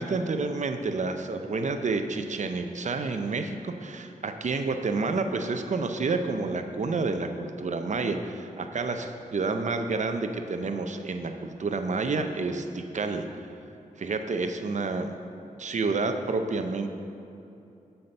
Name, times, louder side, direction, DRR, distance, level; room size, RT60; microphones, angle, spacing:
voice 1, 0.0-13.3 14.0-15.1 15.6-16.9, right 3 dB, 55° right, 6 dB, 0.7 m, -29 dB
7.6 x 5.8 x 6.7 m, 2.8 s
wide cardioid pair, 75°, 15 cm